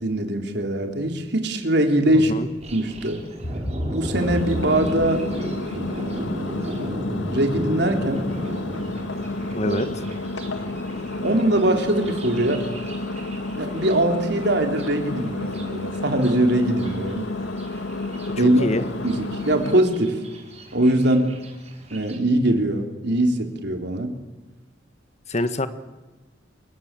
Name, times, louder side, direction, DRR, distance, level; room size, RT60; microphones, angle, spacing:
voice 1, 0.0-2.3 2.7-3.2 3.9-5.2 7.3-8.3 9.6-9.8 11.2-12.6 13.6-17.2 18.3-18.7 19.0-20.2 20.7-21.3 21.9-24.1, right 1 dB, 65° right, 5 dB, 3.7 m, -22 dB
voice 2, 2.1-2.5 9.5-9.9 18.4-18.8 25.3-25.7, left 1 dB, 35° left, 11 dB, 1.6 m, -25 dB
sound 1, 2.6-3.0 3.4-5.4 5.8-6.2 6.6-6.7, equal, 65° left, 5.2 m, -31 dB
Thunder, 2.6-22.2, equal, 35° right, 5.2 m, -36 dB
Engine, 4.2-19.8, left 2 dB, 85° left, 2.3 m, -31 dB
27.5 x 23.0 x 7.6 m, 1.2 s
head